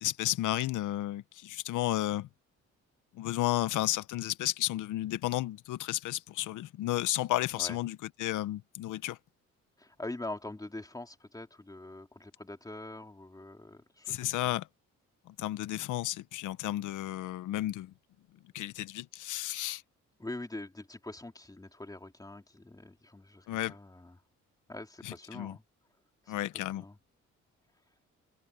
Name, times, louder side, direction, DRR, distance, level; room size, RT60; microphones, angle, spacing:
voice 1, 0.0-2.3 3.1-9.2 14.1-14.7 15.3-17.9 18.5-19.8 23.5-23.7 25.0-25.5 26.3-26.8, left 15 dB, 85° left, 1.0 m, -33 dB
voice 2, 9.8-14.5 20.2-24.1 24.7-25.6 26.2-27.0, left 2 dB, 10° left, 3.0 m, -44 dB
cardioid pair, 90°, 30 cm